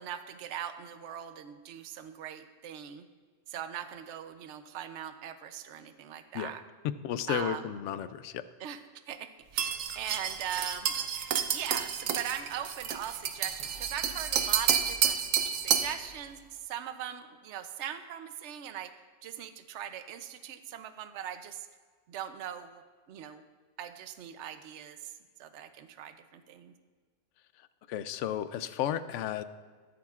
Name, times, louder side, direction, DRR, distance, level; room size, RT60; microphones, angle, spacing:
voice 1, 0.0-3.1 3.5-6.6 7.3-7.7 8.6-8.8 9.1-10.9 11.5-15.2 15.6-18.9 19.2-21.7 22.1-22.8 23.1-23.4 23.8-25.1 25.4-26.7, right 10 dB, 65° right, 9 dB, 0.9 m, -40 dB
voice 2, 7.0-8.4 27.6-29.4, left 10 dB, 75° left, 13 dB, 0.9 m, -33 dB
sound 1, 9.6-16.0, right 8 dB, 85° right, 1.1 m, -30 dB
22.5 x 8.7 x 2.4 m, 1.5 s
omnidirectional pair, 1.3 m